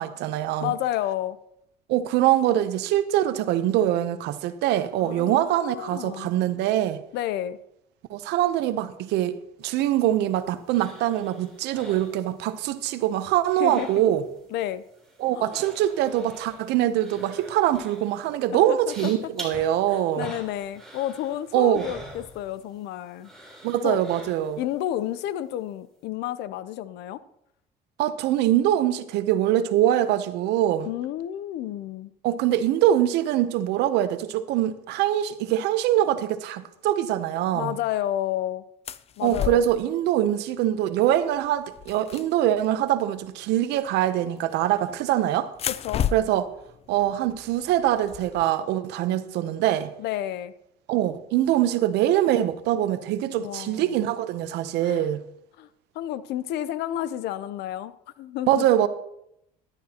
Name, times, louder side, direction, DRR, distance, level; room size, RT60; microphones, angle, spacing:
voice 1, 0.0-0.7 1.9-7.0 8.1-14.2 15.2-20.3 21.5-21.9 23.6-24.6 28.0-30.9 32.2-37.8 39.2-45.5 46.1-46.5 46.9-49.9 50.9-55.2 58.5-58.9, right 12 dB, 85° right, 0.7 m, -23 dB
voice 2, 0.6-1.4 5.0-6.3 7.1-7.6 13.6-13.9 14.5-14.8 15.3-15.6 18.5-19.1 19.9-23.3 23.8-24.0 24.6-27.2 30.8-32.1 37.5-38.6 39.2-39.6 45.7-46.1 50.0-50.5 53.4-54.1 54.8-55.1 55.6-55.7 55.9-58.7, left 12 dB, 80° left, 0.6 m, -31 dB
sound 1, 9.8-12.8 13.1-14.4 14.7-22.8 23.2-24.7 25.1-25.2, right 1 dB, 5° left, 3.8 m, -45 dB
sound 2, 38.9-39.9 41.0-41.2 41.4-42.9 44.4-44.9 45.5-48.6, left 9 dB, 40° left, 0.4 m, -33 dB
13.5 x 12.0 x 2.9 m
cardioid pair, 110°, 17 cm